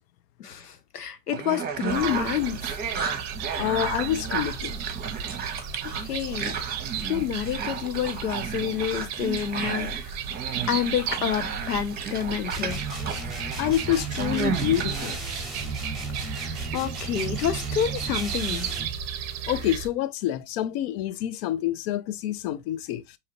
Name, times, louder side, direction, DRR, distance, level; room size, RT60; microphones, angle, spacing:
voice 1, 0.4-2.8 6.0-6.7 7.1-10.2 10.7-12.8 16.2-18.7, left 9 dB, 80° left, 0.8 m, -29 dB
sound 1, 1.3-15.2, right 6 dB, 20° right, 0.9 m, -33 dB
sound 2, 1.9-19.9, right 7 dB, 35° right, 0.6 m, -35 dB
voice 2, 3.6-4.7 13.6-15.2 19.5-23.2, left 12 dB, 40° left, 0.5 m, -27 dB
sound 3, 12.5-19.0, right 3 dB, ahead, 1.1 m, -35 dB
4.8 x 2.8 x 2.8 m
figure-of-eight pair, 85°, 46 cm